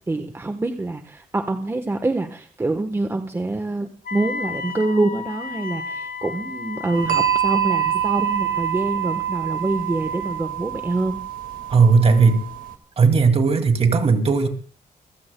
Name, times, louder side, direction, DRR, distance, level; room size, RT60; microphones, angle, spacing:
voice 1, 0.1-11.2, right 2 dB, 15° right, 6 dB, 1.1 m, -25 dB
Wind instrument woodwind instrument, 4.0-10.5, left 5 dB, 70° left, 1.2 m, -34 dB
sound 1, 6.9-12.7, right 11 dB, 70° right, 1.9 m, -26 dB
voice 2, 11.7-12.4 13.0-14.5, right 4 dB, 40° right, 6 dB, 2.3 m, -16 dB
26.5 x 15.5 x 2.2 m, 0.40 s
cardioid pair, 130°, 15 cm